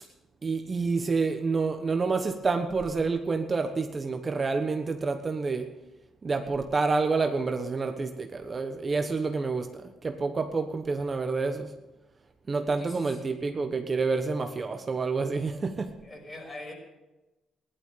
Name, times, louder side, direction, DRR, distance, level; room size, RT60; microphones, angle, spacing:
voice 1, 0.4-5.7 6.2-11.7 12.5-16.0, right 4 dB, 35° right, 6 dB, 1.3 m, -28 dB
voice 2, 12.8-13.3 16.0-16.7, left 1 dB, 30° left, 2 dB, 5.8 m, -42 dB
16.0 x 11.5 x 6.9 m, 1.0 s
cardioid pair, 90°, 0 cm